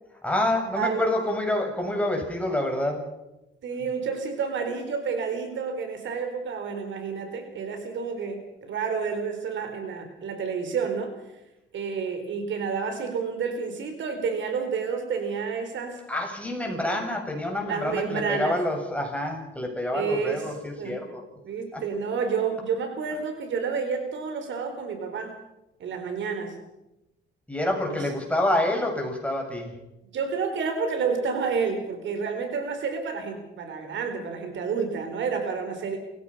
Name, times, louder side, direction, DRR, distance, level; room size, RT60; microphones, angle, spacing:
voice 1, 0.2-3.1 16.1-21.2 21.7-21.8 27.5-29.7, left 1 dB, 5° left, 1 dB, 7.3 m, -27 dB
voice 2, 3.6-11.1 11.7-16.0 16.7-17.0 17.7-18.6 19.9-20.5 20.8-21.0 21.4-25.3 25.8-26.5 27.9-28.0 30.1-36.0, right 5 dB, 70° right, 6 dB, 4.4 m, -30 dB
29.5 x 16.5 x 5.7 m, 0.93 s
cardioid pair, 90°, 20 cm